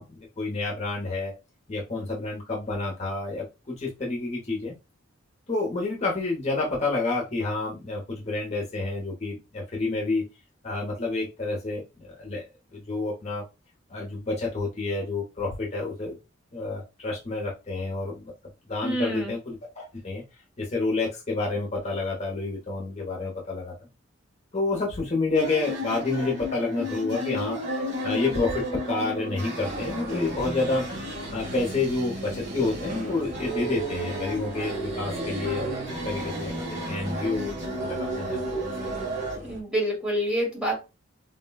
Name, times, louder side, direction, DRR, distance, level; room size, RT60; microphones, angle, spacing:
voice 1, 0.0-1.3 1.7-4.8 5.5-10.2 10.6-12.4 12.7-13.4 13.9-16.2 16.5-18.3 18.7-20.2 20.6-23.7 24.5-27.6 28.0-30.8 31.3-35.7 36.0-37.5 37.8-38.7, left 3 dB, 35° left, 0.8 m, -29 dB
voice 2, 18.8-19.3 39.3-40.8, equal, 5° right, 1.1 m, -27 dB
sound 1, 25.3-39.3, right 1 dB, 60° right, 1.2 m, -33 dB
sound 2, 29.6-39.6, right 1 dB, 40° right, 0.7 m, -39 dB
3.8 x 2.2 x 2.2 m
head